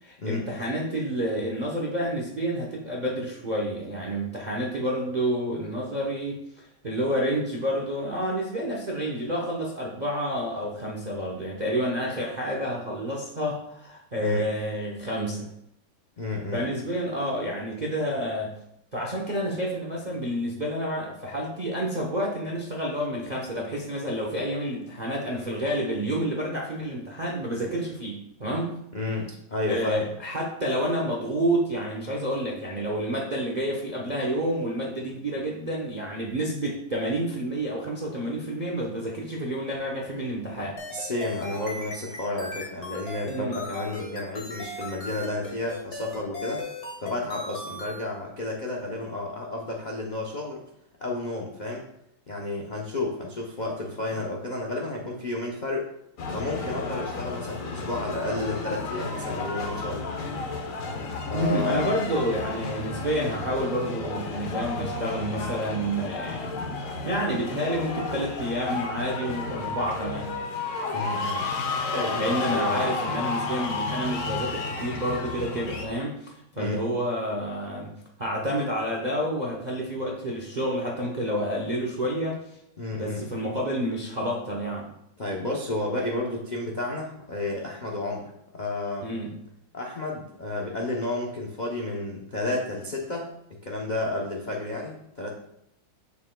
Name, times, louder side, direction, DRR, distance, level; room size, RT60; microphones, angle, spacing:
voice 1, 0.0-15.5 16.5-18.6 18.9-28.8 29.7-40.8 43.3-43.6 61.3-70.3 72.1-82.4 82.9-84.9 89.0-89.4, equal, 45° right, -2 dB, 0.5 m, -29 dB
voice 2, 16.2-16.6 28.9-30.1 40.5-46.6 47.0-50.6 51.0-51.9 52.3-55.9 56.3-60.1 61.3-61.9 70.9-71.4 71.9-72.9 76.6-76.8 82.8-83.2 85.2-89.1 89.7-95.3, left 2 dB, 80° left, -1 dB, 0.4 m, -31 dB
sound 1, 40.8-48.0, left 2 dB, 40° left, 1.7 m, -37 dB
sound 2, 56.2-75.9, left 3 dB, 55° left, 1.1 m, -32 dB
7.1 x 6.7 x 2.2 m, 0.78 s
omnidirectional pair, 2.0 m